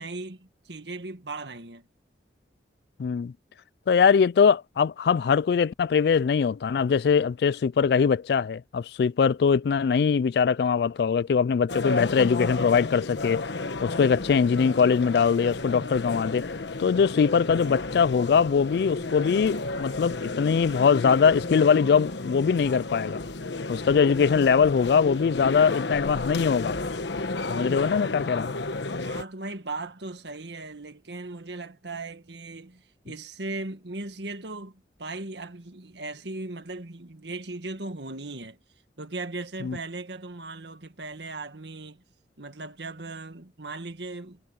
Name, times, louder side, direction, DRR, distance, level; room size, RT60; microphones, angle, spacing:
voice 1, 0.0-1.9 29.0-38.6 39.0-42.0 42.4-44.4, right 2 dB, 75° right, 1.8 m, -38 dB
voice 2, 3.0-3.3 3.9-13.4 13.8-16.5 16.8-23.2 23.7-26.8 27.5-28.5 39.6-39.8, left 6 dB, 65° left, 0.3 m, -22 dB
sound 1, 11.7-29.2, left 3 dB, 80° left, 1.2 m, -32 dB
head